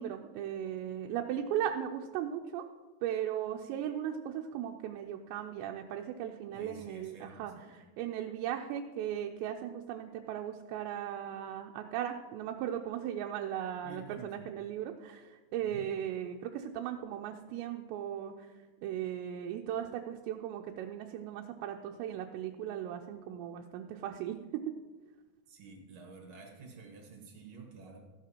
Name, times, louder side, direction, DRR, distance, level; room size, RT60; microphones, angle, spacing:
voice 1, 0.0-2.6 3.0-18.5 18.8-24.6, right 10 dB, 90° right, 2 dB, 2.8 m, -37 dB
voice 2, 6.5-7.7 13.8-14.3 15.6-15.8 25.5-28.0, right 3 dB, 50° right, 1 dB, 2.1 m, -50 dB
14.5 x 11.0 x 2.9 m, 1.3 s
omnidirectional pair, 4.9 m